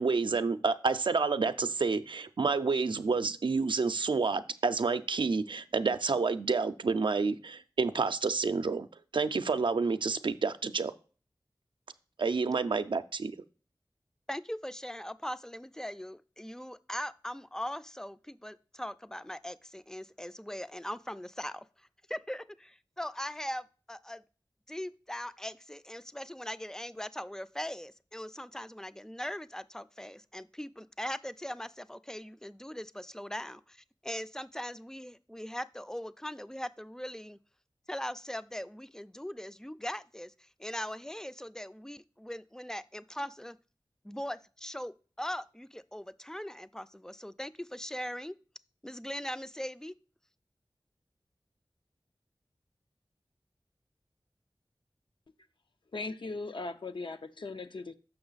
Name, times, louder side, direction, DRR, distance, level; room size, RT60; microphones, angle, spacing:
voice 1, 0.0-8.9 9.1-10.9 12.2-13.3, right 4 dB, 80° right, 0.4 m, -29 dB
voice 2, 14.3-24.2 24.7-37.4 37.9-43.6 44.0-48.4 48.8-50.0, equal, 5° left, 0.3 m, -40 dB
voice 3, 55.9-57.9, left 3 dB, 80° left, 0.5 m, -38 dB
6.9 x 5.5 x 3.9 m
wide cardioid pair, 45°, 8 cm